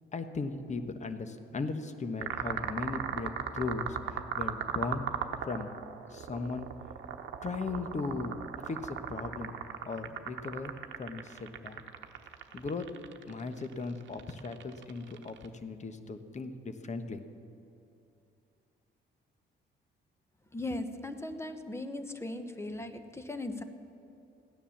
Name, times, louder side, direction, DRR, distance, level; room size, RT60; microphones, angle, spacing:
voice 1, 0.1-4.0 4.4-5.0 5.4-5.7 6.1-6.7 7.4-8.3 8.7-9.6 9.8-10.7 11.0-11.8 12.5-13.0 13.3-17.2, left 3 dB, 35° left, 9 dB, 1.2 m, -37 dB
sound 1, 2.2-15.5, right 8 dB, 70° right, 1.0 m, -38 dB
voice 2, 20.5-23.6, left 2 dB, 15° left, 8 dB, 1.1 m, -38 dB
16.0 x 9.9 x 7.2 m, 2.7 s
cardioid pair, 90°, 20 cm